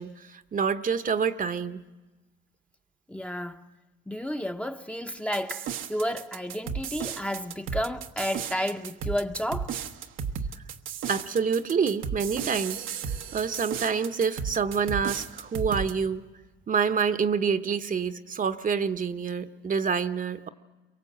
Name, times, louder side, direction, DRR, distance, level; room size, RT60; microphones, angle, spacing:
voice 1, 0.0-1.8 11.1-16.2 16.7-20.5, right 6 dB, 40° right, 1.0 m, -27 dB
voice 2, 3.1-3.7 4.1-9.8, equal, 5° left, 0.8 m, -31 dB
sound 1, 5.3-15.9, right 7 dB, 90° right, 1.2 m, -34 dB
29.5 x 23.5 x 7.9 m
cardioid pair, 90°, 20 cm